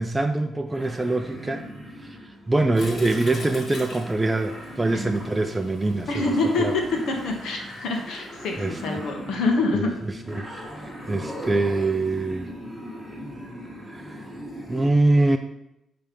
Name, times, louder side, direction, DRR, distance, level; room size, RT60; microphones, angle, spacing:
voice 1, 0.0-1.7 2.0-2.2 2.5-6.2 6.6-6.7 8.6-8.8 9.7-9.9 10.3-10.5 10.8-12.5 13.9-14.2 14.7-15.4, right 2 dB, 15° right, 6 dB, 0.4 m, -24 dB
sound 1, 0.7-14.9, equal, 10° left, 1.9 m, -39 dB
Toilet flush, 2.7-9.0, left 2 dB, 55° left, 1.9 m, -43 dB
voice 2, 6.1-6.8 7.1-9.9, left 3 dB, 75° left, 2 dB, 1.3 m, -25 dB
6.5 x 3.3 x 5.3 m, 0.85 s
cardioid pair, 90°, 0 cm